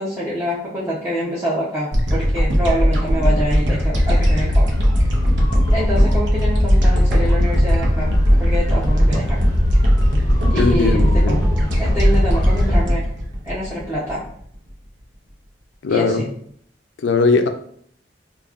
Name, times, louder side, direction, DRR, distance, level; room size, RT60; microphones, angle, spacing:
voice 1, 0.0-4.7 5.0-5.1 5.7-8.1 8.4-9.4 10.5-11.4 11.8-13.1 13.4-14.2 15.9-16.3, equal, 15° right, -8 dB, 0.7 m, -26 dB
sound 1, 1.9-14.4, equal, 85° right, 0.7 m, -18 dB
sound 2, 3.9-12.8, left 1 dB, 20° left, 0.7 m, -25 dB
voice 2, 10.5-11.4 15.8-16.3 17.0-17.5, left 4 dB, 80° left, 7 dB, 0.4 m, -19 dB
5.2 x 2.3 x 2.4 m, 0.64 s
head